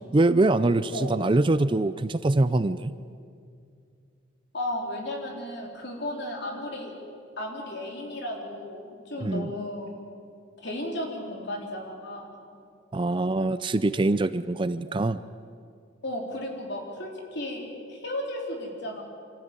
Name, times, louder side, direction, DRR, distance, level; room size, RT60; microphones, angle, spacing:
voice 1, 0.1-2.9 9.2-9.5 12.9-15.2, right 2 dB, 25° right, 14 dB, 0.5 m, -23 dB
voice 2, 4.5-6.9 7.4-9.9 10.6-12.4 16.0-19.0, left 1 dB, 60° left, 0 dB, 4.1 m, -34 dB
26.5 x 14.0 x 9.0 m, 2.3 s
head